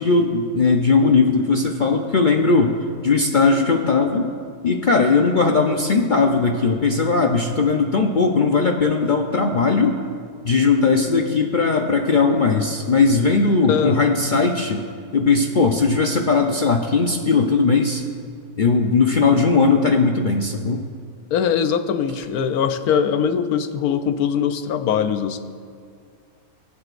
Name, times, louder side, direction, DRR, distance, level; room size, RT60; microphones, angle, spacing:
voice 1, 0.0-2.8 3.0-4.3 4.6-10.0 10.4-14.8 15.1-18.0 18.6-20.8, left 4 dB, 55° left, 2 dB, 0.5 m, -18 dB
voice 2, 13.7-14.0 21.3-25.4, left 7 dB, 80° left, 9 dB, 1.1 m, -21 dB
23.5 x 7.9 x 2.5 m, 2.1 s
omnidirectional pair, 1.6 m